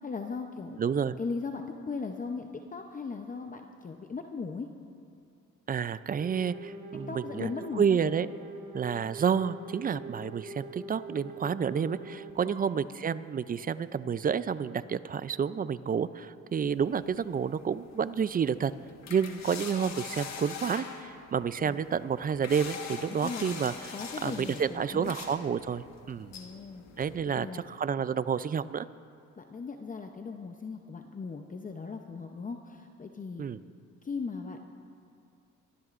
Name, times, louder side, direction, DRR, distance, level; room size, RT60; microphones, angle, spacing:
voice 1, 0.0-0.8 1.2-4.7 7.1-8.0 12.5-12.6 21.6-21.8 23.2-23.6 23.9-25.1 26.3-26.8 27.3-27.6 29.4-33.4 34.0-34.7, left 4 dB, 25° left, 4 dB, 0.7 m, -38 dB
voice 2, 0.8-1.2 5.7-8.3 8.7-18.7 19.1-23.9 24.2-26.3 27.0-28.9 33.4-33.6, right 7 dB, 30° right, 15 dB, 0.4 m, -30 dB
sound 1, 6.2-12.8 14.6-14.7, right 2 dB, 45° right, 2.7 m, -44 dB
sound 2, 16.6-27.2, left 6 dB, 60° left, 1.4 m, -44 dB
23.0 x 14.0 x 2.5 m, 2.4 s
cardioid pair, 90°, 30 cm